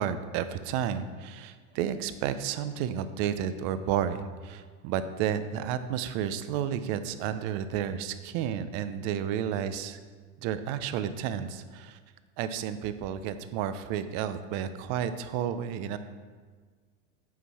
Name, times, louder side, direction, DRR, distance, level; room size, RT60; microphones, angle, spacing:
voice 1, 0.0-10.0 10.4-12.0 12.4-16.0, right 9 dB, 40° right, 12 dB, 0.4 m, -31 dB
8.3 x 4.6 x 4.2 m, 1.6 s
supercardioid pair, 140°, 40 cm